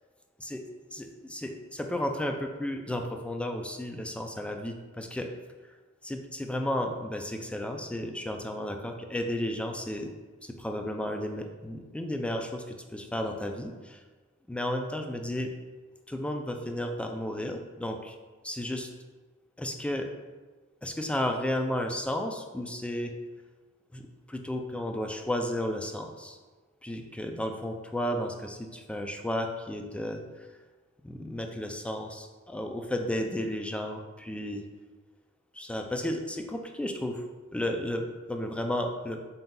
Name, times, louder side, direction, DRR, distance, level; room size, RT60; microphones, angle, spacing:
voice 1, 0.9-5.3 6.0-10.1 10.4-14.0 14.5-15.5 16.1-18.2 18.4-18.9 19.6-20.1 20.8-23.1 23.9-26.4 26.8-30.5 31.0-34.6 35.5-37.2 37.5-39.2, left 1 dB, 5° left, 4 dB, 0.3 m, -33 dB
4.1 x 3.7 x 2.2 m, 1.3 s
wide cardioid pair, 70°, 29 cm